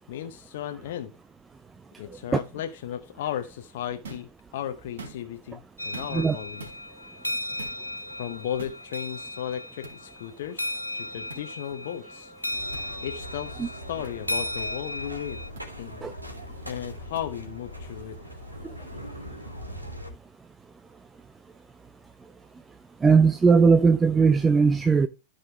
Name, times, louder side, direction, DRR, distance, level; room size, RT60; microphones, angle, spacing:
voice 1, 0.1-1.1 2.0-6.7 8.2-12.3 13.0-15.4 15.8-16.1 16.7-18.2, left 10 dB, 50° left, 0.8 m, -35 dB
sound 1, 4.0-4.3 4.8-5.4 5.9-6.3 6.6-6.8 7.6-7.8 8.6-8.8 9.8-10.0 11.3-11.4 12.7-12.9 14.0-14.1 15.5-15.7 17.2-17.3, right 3 dB, 60° right, 3.2 m, -42 dB
sound 2, 5.8-15.5, left 1 dB, 90° left, 0.5 m, -35 dB
sound 3, 12.5-20.1, equal, 90° right, 3.0 m, -41 dB
voice 2, 23.0-25.1, right 5 dB, 10° right, 0.5 m, -19 dB
13.5 x 5.4 x 3.4 m
figure-of-eight pair, 100°, 0 cm